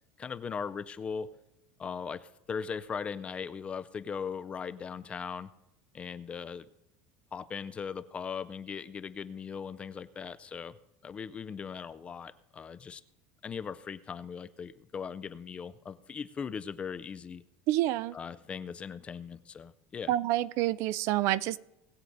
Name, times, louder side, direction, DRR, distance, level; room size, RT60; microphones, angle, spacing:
voice 1, 0.2-1.3 1.8-5.5 5.9-6.7 7.3-10.8 11.0-13.0 13.4-17.4 18.1-20.1, left 6 dB, 20° left, 13 dB, 0.4 m, -39 dB
voice 2, 17.7-18.2 20.1-21.6, right 15 dB, 50° right, 19 dB, 0.4 m, -28 dB
19.5 x 7.9 x 3.9 m, 0.86 s
cardioid pair, 165°, 6 cm